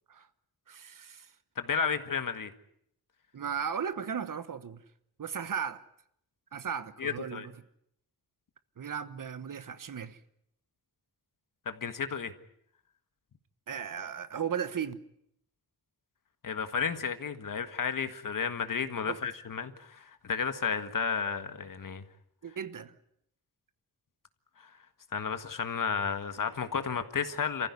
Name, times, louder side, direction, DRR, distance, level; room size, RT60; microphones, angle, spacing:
voice 1, 0.7-1.3 3.3-4.8 5.2-5.8 6.5-7.5 8.8-10.2 13.7-15.0 19.0-19.2 22.4-22.9, right 7 dB, 60° right, 1.3 m, -36 dB
voice 2, 1.6-2.5 7.0-7.5 11.7-12.3 16.4-22.0 25.1-27.7, left 6 dB, 60° left, 1.7 m, -32 dB
28.5 x 15.0 x 9.7 m
wide cardioid pair, 180°, 36 cm